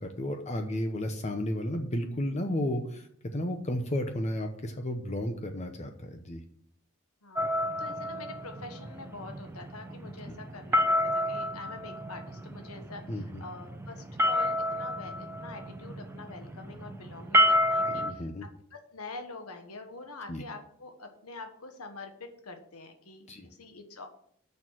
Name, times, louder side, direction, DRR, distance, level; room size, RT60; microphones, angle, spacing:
voice 1, 0.0-3.1 3.3-6.4 13.1-13.4 17.9-18.4 20.3-20.4 23.3-23.5, left 1 dB, 30° left, 5 dB, 0.8 m, -33 dB
sound 1, 7.4-18.1, left 1 dB, 10° right, 0.7 m, -30 dB
voice 2, 7.8-18.3 18.7-24.1, left 3 dB, 80° left, 6 dB, 1.3 m, -45 dB
6.7 x 6.3 x 7.5 m, 0.65 s
head